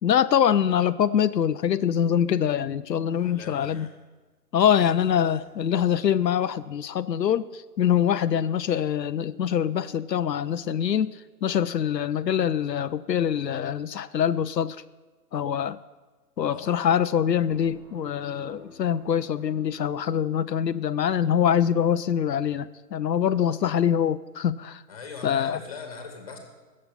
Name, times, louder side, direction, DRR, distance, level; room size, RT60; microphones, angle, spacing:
voice 1, 0.0-3.9 4.5-14.8 15.3-15.8 16.4-24.8 25.2-25.6, left 9 dB, 85° left, 12 dB, 0.7 m, -24 dB
voice 2, 3.0-4.0 4.5-5.4 16.4-16.8 23.3-23.6 24.9-26.4, left 4 dB, 20° left, 4 dB, 1.8 m, -42 dB
sound 1, 17.2-20.5, right 1 dB, 5° right, 1.8 m, -50 dB
16.0 x 7.6 x 8.5 m, 1.3 s
hypercardioid pair, 175°, 48 cm